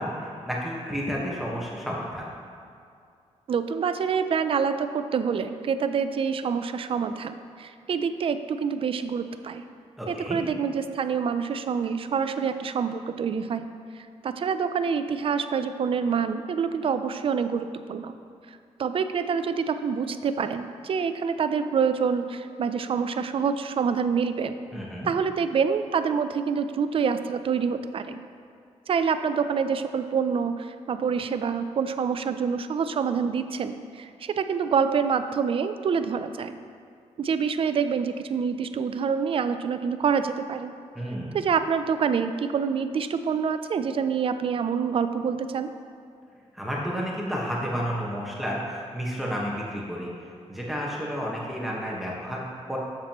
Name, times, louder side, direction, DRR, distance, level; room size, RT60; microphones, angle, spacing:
voice 1, 0.0-2.3 10.0-10.4 24.7-25.1 40.9-41.4 46.5-50.1 50.5-52.8, equal, ahead, -4 dB, 1.3 m, -31 dB
voice 2, 3.5-9.6 10.1-13.7 14.2-18.2 18.5-24.5 25.0-28.2 28.9-36.6 37.2-40.7 41.3-45.7, right 6 dB, 50° right, 10 dB, 0.5 m, -26 dB
10.0 x 7.4 x 3.0 m, 2.3 s
cardioid pair, 95°, 12 cm